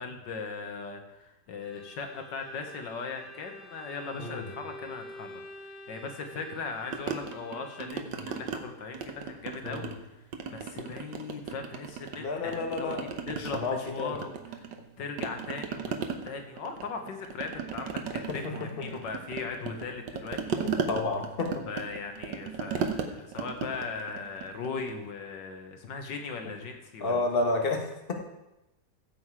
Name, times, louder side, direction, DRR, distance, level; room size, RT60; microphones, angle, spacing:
voice 1, 0.0-9.9 10.5-14.3 14.6-14.7 15.0-20.4 21.7-27.2, left 4 dB, 85° left, 5 dB, 2.0 m, -39 dB
Bowed string instrument, 1.6-8.2, left 1 dB, 70° left, 1.8 m, -48 dB
voice 2, 4.2-4.5 9.6-9.9 12.2-14.2 18.3-18.5 20.6-21.6 27.0-28.1, left 3 dB, 35° left, 2 dB, 1.5 m, -31 dB
sound 1, 6.9-8.6 8.9-10.0 10.3-12.2 12.5-14.9 15.2-25.0, right 6 dB, 85° right, 1.7 m, -36 dB
15.5 x 7.6 x 4.8 m, 0.95 s
omnidirectional pair, 1.9 m